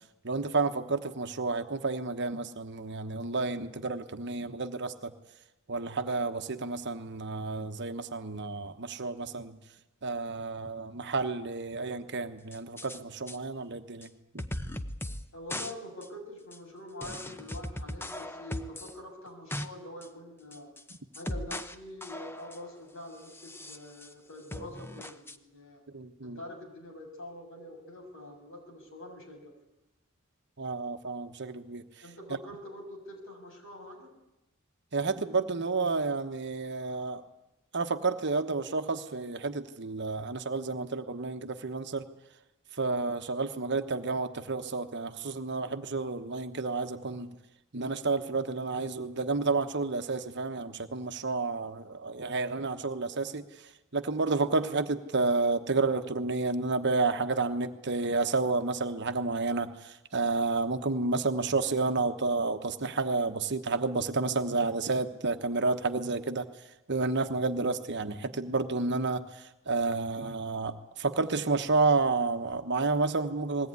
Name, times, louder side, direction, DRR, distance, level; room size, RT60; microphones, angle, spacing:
voice 1, 0.2-5.1 5.7-9.6 10.0-14.4 25.9-26.4 30.6-31.8 34.9-37.2 37.7-42.0 42.8-47.3 47.7-53.4 53.9-66.5 66.9-73.7, right 3 dB, 55° right, 8 dB, 1.1 m, -30 dB
sound 1, 12.5-13.0 13.3-13.4 14.0-14.1 14.4-15.2 15.5-15.7 16.0-16.1 16.5-16.6 17.0-18.9 19.3-19.7 20.0-20.1 20.5-21.7 22.0-22.7 23.3-24.1 24.5-25.4, left 1 dB, 10° left, 0.8 m, -38 dB
voice 2, 15.3-20.7 21.1-25.8 26.2-29.5 32.0-34.1, left 1 dB, 65° left, 2 dB, 6.3 m, -45 dB
20.5 x 17.5 x 9.6 m, 0.94 s
head